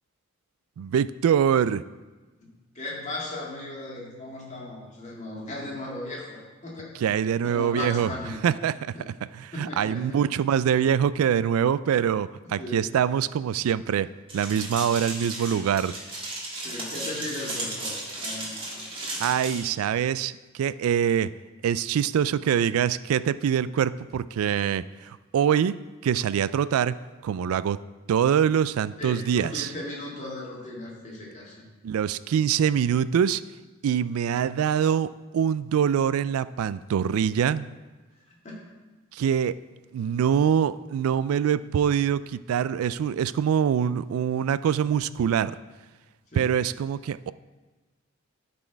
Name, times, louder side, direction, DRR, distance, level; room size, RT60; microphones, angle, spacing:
voice 1, 0.8-1.8 7.0-8.1 8.4-8.7 9.1-14.1 14.3-15.9 19.2-21.3 21.6-25.7 26.0-27.0 27.2-27.8 28.1-29.7 31.8-33.4 33.8-37.7 39.1-39.6 39.9-45.5 46.3-47.3, right 8 dB, 90° right, 16 dB, 0.3 m, -24 dB
voice 2, 2.7-6.9 7.4-8.5 9.0-9.1 9.5-10.3 12.6-12.9 16.6-18.8 29.0-31.7 38.3-38.6 46.3-46.5, left 2 dB, 35° left, -4 dB, 1.9 m, -37 dB
sound 1, 14.3-19.6, right 2 dB, 25° right, 1.9 m, -35 dB
12.0 x 4.3 x 4.6 m, 1.2 s
head